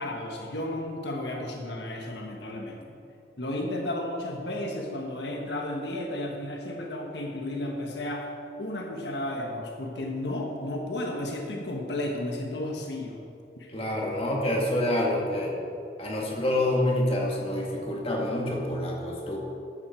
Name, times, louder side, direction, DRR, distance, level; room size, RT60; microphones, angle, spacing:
voice 1, 0.0-2.9 3.4-8.3 8.6-13.2 13.6-13.7, left 1 dB, 75° left, 1 dB, 1.4 m, -33 dB
voice 2, 13.7-15.6 16.0-19.4, left 1 dB, 30° left, -2 dB, 2.0 m, -27 dB
14.0 x 11.5 x 4.5 m, 2.6 s
head